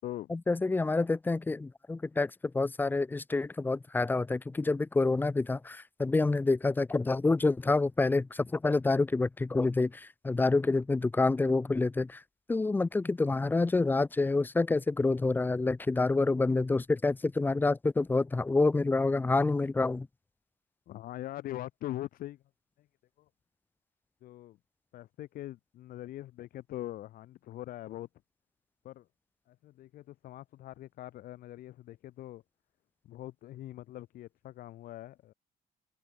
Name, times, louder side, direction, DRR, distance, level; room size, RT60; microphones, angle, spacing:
voice 1, 0.3-12.2 12.5-20.1, left 3 dB, 10° left, 0.7 m, -28 dB
voice 2, 20.9-22.4 22.8-22.9 23.2-23.3 24.2-24.6 24.9-28.1 28.8-29.1 29.5-32.4 33.0-35.3, left 14 dB, 65° left, 5.4 m, -42 dB
open air
cardioid pair, 135°, 16 cm